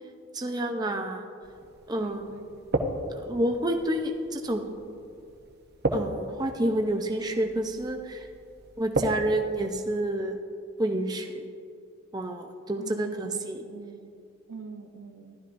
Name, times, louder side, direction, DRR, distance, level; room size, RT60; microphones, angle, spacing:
voice 1, 0.3-1.3 1.9-2.2 3.1-4.7 5.9-8.3 8.8-10.4 10.8-11.5 12.1-13.6, right 1 dB, 20° right, 4 dB, 0.5 m, -29 dB
sound 1, 1.4-9.8, right 1 dB, 50° right, 0.8 m, -35 dB
voice 2, 1.9-2.6 12.8-14.1 14.5-15.4, right 3 dB, 90° right, 7 dB, 0.7 m, -43 dB
15.0 x 11.5 x 2.6 m, 2.5 s
head